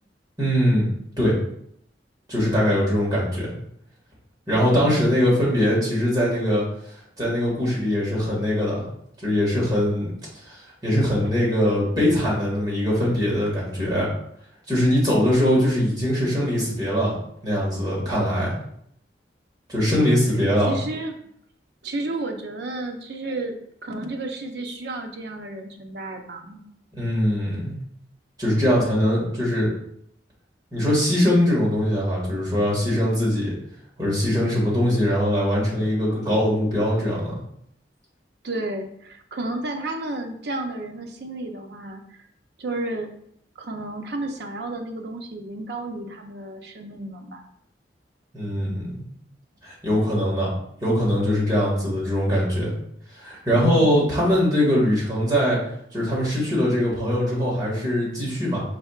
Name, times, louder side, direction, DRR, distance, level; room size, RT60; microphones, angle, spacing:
voice 1, 0.4-0.8 1.2-1.4 2.3-3.5 4.5-6.6 7.2-8.8 9.2-10.1 10.4-14.1 14.7-17.1 17.4-18.6 19.7-20.8 27.0-27.7 28.4-29.7 30.7-33.5 34.0-37.4 48.3-49.0 49.6-50.5 50.8-52.7 53.2-55.6 55.9-58.6, equal, 25° right, -6 dB, 1.8 m, -22 dB
voice 2, 20.2-21.2 21.8-26.6 38.4-42.2 42.6-43.1 43.6-47.4 51.6-51.8, right 2 dB, 65° right, 4 dB, 0.6 m, -32 dB
5.0 x 4.4 x 2.4 m, 0.70 s
head